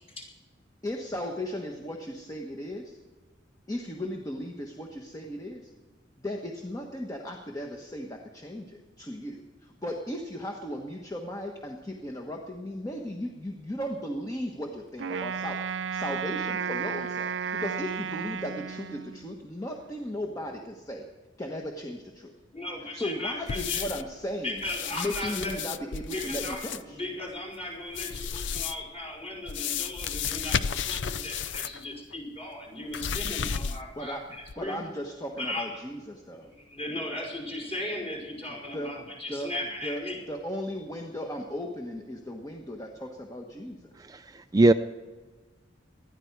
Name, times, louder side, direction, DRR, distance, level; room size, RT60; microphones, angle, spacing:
voice 1, 0.8-3.0 3.7-5.7 6.2-21.1 21.4-22.3 22.9-24.6 24.9-27.0 33.9-34.3 34.6-36.5 38.7-39.5 39.8-43.9, equal, 20° left, 2 dB, 1.2 m, -36 dB
Wind instrument woodwind instrument, 15.0-19.4, right 6 dB, 85° right, 0.5 m, -33 dB
voice 2, 22.5-23.8 24.4-25.5 26.1-26.6 26.9-34.8 35.3-35.8 36.7-40.2, left 1 dB, 35° left, -1 dB, 5.1 m, -36 dB
sound 1, 23.5-24.1 24.6-26.8 27.9-28.9 29.5-31.8 32.1-32.2 32.9-34.0 34.4-34.5, left 7 dB, 80° left, 0.5 m, -33 dB
voice 3, 44.0-44.7, right 2 dB, 20° right, 9 dB, 0.4 m, -21 dB
20.0 x 13.0 x 4.7 m, 1.3 s
head